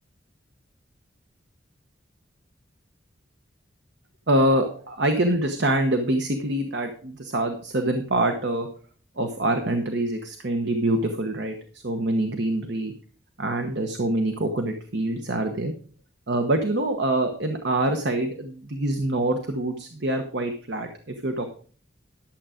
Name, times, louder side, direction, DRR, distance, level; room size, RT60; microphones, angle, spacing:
voice 1, 4.3-8.7 9.2-12.9 13.4-15.7 16.3-21.5, right 1 dB, 65° right, 5 dB, 1.1 m, -25 dB
11.5 x 7.5 x 5.0 m, 0.43 s
head